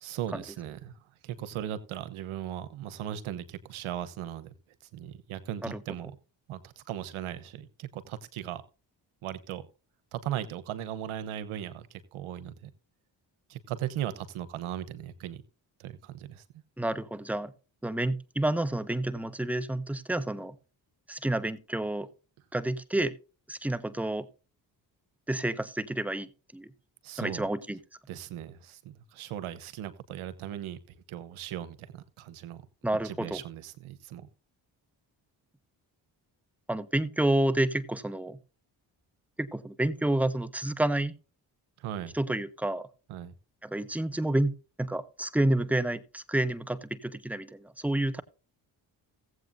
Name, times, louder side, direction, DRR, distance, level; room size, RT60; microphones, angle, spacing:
voice 1, 0.0-4.5 4.9-6.1 6.5-8.6 9.2-9.7 10.1-12.7 13.5-15.4 15.8-16.4 27.0-27.5 28.1-32.6 33.0-34.3 41.8-42.1 43.1-43.3, right 11 dB, 80° right, 1.0 m, -38 dB
voice 2, 16.8-17.5 17.8-20.5 21.1-22.1 22.5-23.1 23.5-24.3 25.3-26.3 26.5-26.7 27.2-27.8 32.8-33.4 36.7-38.4 39.4-41.1 42.1-42.9 43.6-44.5 44.8-48.2, right 1 dB, 5° right, 1.2 m, -29 dB
17.0 x 7.9 x 2.6 m
supercardioid pair, 45°, 48 cm